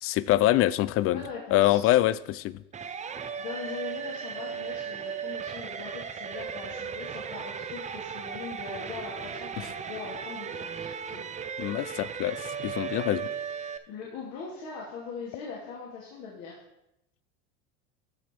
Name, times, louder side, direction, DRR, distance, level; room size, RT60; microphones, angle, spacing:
voice 1, 0.0-1.2 1.5-2.6 11.6-13.3, left 15 dB, 45° left, 18 dB, 0.5 m, -25 dB
voice 2, 1.1-1.9 3.4-11.2 13.9-16.6, left 5 dB, 60° left, -4 dB, 2.5 m, -41 dB
sound 1, 2.7-13.8, right 7 dB, 20° right, 0.6 m, -36 dB
13.5 x 5.2 x 4.5 m, 0.84 s
supercardioid pair, 115°, 33 cm